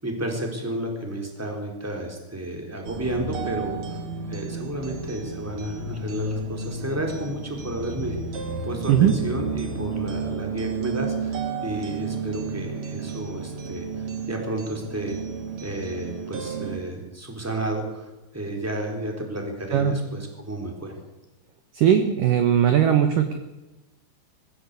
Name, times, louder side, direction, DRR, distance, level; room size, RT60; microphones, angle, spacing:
voice 1, 0.0-4.0 4.3-15.1 15.6-21.0, right 1 dB, 5° right, 2 dB, 3.1 m, -32 dB
sound 1, 2.8-16.8, right 4 dB, 50° right, 2.1 m, -32 dB
voice 2, 21.7-23.4, right 9 dB, 70° right, 8 dB, 2.0 m, -19 dB
20.5 x 15.5 x 8.4 m, 1.0 s
omnidirectional pair, 5.4 m